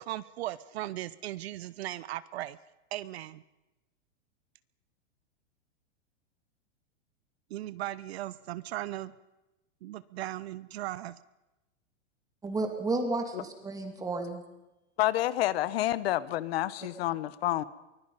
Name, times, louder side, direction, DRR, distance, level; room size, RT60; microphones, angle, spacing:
voice 1, 0.0-2.6 2.9-3.4 7.5-9.1 9.8-11.2, right 14 dB, 55° right, 0.8 m, -37 dB
voice 2, 12.4-14.4, right 3 dB, 10° right, 2.6 m, -32 dB
voice 3, 15.0-17.6, left 14 dB, 55° left, 1.0 m, -29 dB
24.0 x 21.5 x 5.6 m
supercardioid pair, 160°, 37 cm